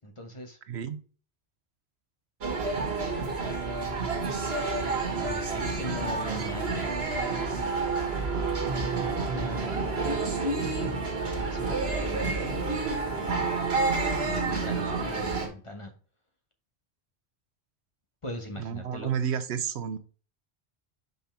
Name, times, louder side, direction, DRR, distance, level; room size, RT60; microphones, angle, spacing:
voice 1, 0.0-0.6 5.2-6.9 8.9-10.4 11.2-12.5 13.0-13.4 14.2-15.9 18.2-19.1, equal, 30° left, 1.1 m, -40 dB
voice 2, 0.7-1.0 18.6-20.0, right 8 dB, 90° right, 1.0 m, -31 dB
sound 1, 2.4-15.5, right 3 dB, 70° right, 1.7 m, -29 dB
5.5 x 5.4 x 4.4 m
omnidirectional pair, 1.1 m